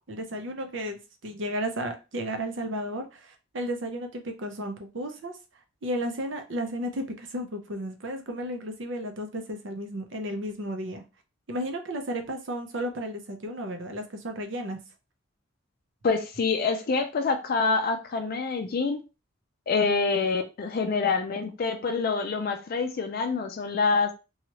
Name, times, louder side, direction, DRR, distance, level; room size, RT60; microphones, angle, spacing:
voice 1, 0.1-5.3 5.8-11.0 11.5-14.8, equal, 65° right, 0.7 m, -33 dB
voice 2, 16.0-19.0 19.7-24.1, left 4 dB, 50° left, 0.4 m, -26 dB
3.0 x 2.3 x 2.8 m
head